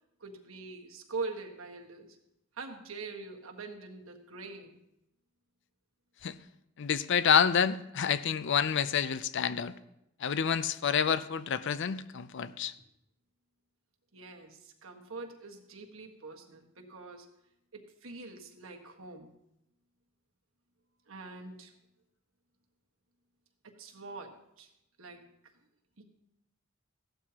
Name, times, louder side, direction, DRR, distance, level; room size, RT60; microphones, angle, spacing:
voice 1, 0.2-2.2 2.5-4.8 14.1-17.3 17.7-19.3 21.1-21.7 23.6-24.7 25.0-25.3 26.0-26.1, right 3 dB, 70° right, 1.5 m, -43 dB
voice 2, 6.8-9.7 10.2-12.7, left 7 dB, 60° left, 0.5 m, -28 dB
16.0 x 12.0 x 2.9 m
head